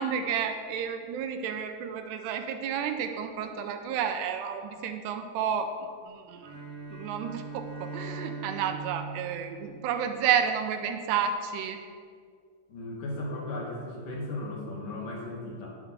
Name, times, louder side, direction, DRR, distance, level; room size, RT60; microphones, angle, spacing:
voice 1, 0.0-5.7 6.1-6.5 6.9-11.8, right 8 dB, 85° right, 7 dB, 2.7 m, -31 dB
Bowed string instrument, 6.4-10.6, right 4 dB, ahead, 2.8 m, -41 dB
voice 2, 12.7-15.7, left 2 dB, 55° left, -3 dB, 3.1 m, -36 dB
11.0 x 6.0 x 8.8 m, 2.1 s
omnidirectional pair, 4.9 m